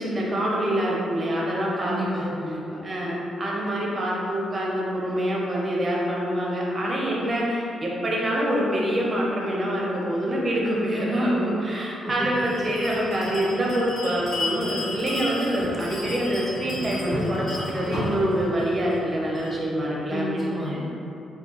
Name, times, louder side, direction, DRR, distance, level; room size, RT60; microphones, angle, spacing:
voice 1, 0.0-2.3 2.8-20.8, equal, 30° right, -4 dB, 0.7 m, -26 dB
voice 2, 1.8-2.8 12.0-12.3 20.1-20.8, equal, ahead, -8 dB, 1.0 m, -31 dB
Bell, 12.3-19.6, left 1 dB, 45° left, 1.4 m, -33 dB
4.3 x 2.3 x 3.0 m, 2.7 s
cardioid pair, 125°, 0 cm